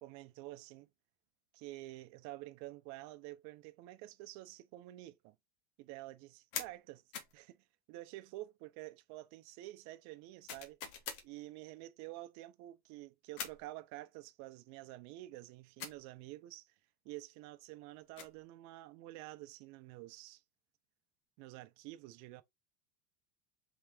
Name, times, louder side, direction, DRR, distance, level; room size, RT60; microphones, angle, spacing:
voice 1, 0.0-0.9 1.5-5.4 5.8-7.0 7.3-7.6 7.9-10.8 11.2-16.7 17.0-20.4 21.4-22.4, right 17 dB, 55° right, 0.7 m, -49 dB
sound 1, 6.5-6.8 7.1-7.4 10.5-11.3 13.4-13.7 15.8-16.0 17.9-18.4, left 7 dB, 65° left, 1.2 m, -43 dB
3.9 x 3.4 x 3.4 m
supercardioid pair, 125°, 33 cm